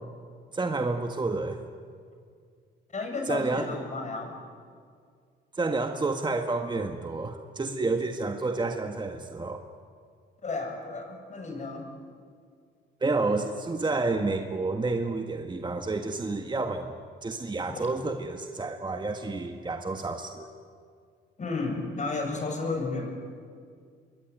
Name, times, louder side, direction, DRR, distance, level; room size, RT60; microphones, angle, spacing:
voice 1, 0.5-1.6 3.3-3.7 5.5-9.6 13.0-16.9 17.2-20.5, right 3 dB, 25° right, 4 dB, 1.8 m, -29 dB
voice 2, 2.9-4.3 10.4-11.9 17.7-17.8 21.4-23.1, left 3 dB, 35° left, 3 dB, 7.1 m, -32 dB
26.5 x 21.5 x 9.5 m, 2.1 s
cardioid pair, 90°, 20 cm